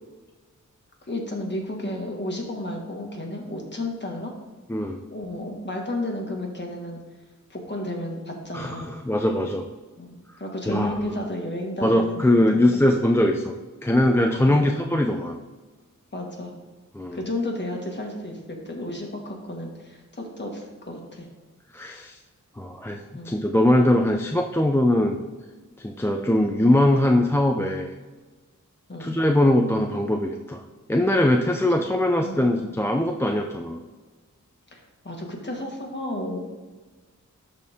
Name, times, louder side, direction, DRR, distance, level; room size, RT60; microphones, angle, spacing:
voice 1, 1.0-4.3 5.1-7.0 7.5-8.9 10.0-12.8 14.5-14.8 16.1-16.6 17.1-21.3 23.1-23.3 28.9-29.2 32.2-32.5 34.7-36.4, left 1 dB, 35° left, 0 dB, 1.7 m, -32 dB
voice 2, 8.5-9.6 10.7-11.0 11.8-13.5 13.8-15.4 16.9-17.2 21.7-22.2 22.6-25.2 25.8-27.9 29.0-30.6 30.9-33.8, left 1 dB, 10° left, 3 dB, 0.5 m, -21 dB
12.0 x 4.2 x 3.6 m, 1.3 s
wide cardioid pair, 80°, 31 cm